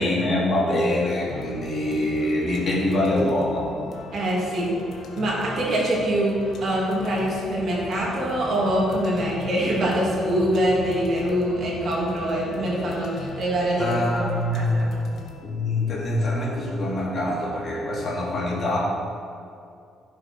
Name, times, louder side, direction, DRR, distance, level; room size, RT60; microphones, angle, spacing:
voice 1, 0.0-3.7 13.8-14.8 15.4-18.8, left 1 dB, 40° left, -4 dB, 2.7 m, -24 dB
sound 1, 1.3-16.6, left 2 dB, 55° left, 1.3 m, -39 dB
voice 2, 4.1-4.7 5.1-14.2 14.5-14.9, right 1 dB, 45° right, -5 dB, 2.8 m, -24 dB
15.0 x 6.6 x 4.7 m, 2.4 s
cardioid pair, 160°, 0 cm